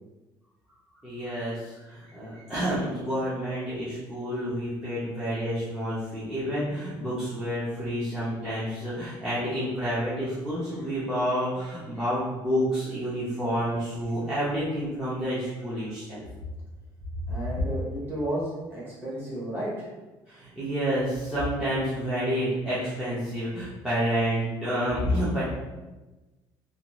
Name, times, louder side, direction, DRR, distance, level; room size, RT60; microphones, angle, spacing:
voice 1, 1.0-16.2 20.3-25.4, equal, 5° right, -12 dB, 0.5 m, -29 dB
voice 2, 17.3-19.9, right 1 dB, 25° right, -7 dB, 1.0 m, -32 dB
2.5 x 2.2 x 2.9 m, 1.2 s
cardioid pair, 170°, 9 cm